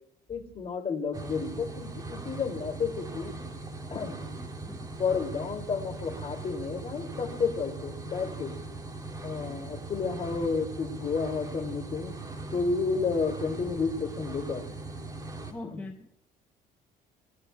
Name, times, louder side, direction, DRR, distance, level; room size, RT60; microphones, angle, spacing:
voice 1, 0.3-3.3 3.9-4.2 5.0-8.5 9.2-12.1 12.5-14.6 15.6-15.8, left 5 dB, 35° left, 5 dB, 2.5 m, -31 dB
sound 1, 1.1-15.5, right 3 dB, 20° right, 2.3 m, -40 dB
voice 2, 15.5-16.2, left 2 dB, 10° left, 3 dB, 1.0 m, -42 dB
26.0 x 18.0 x 2.2 m, 0.67 s
cardioid pair, 110°, 17 cm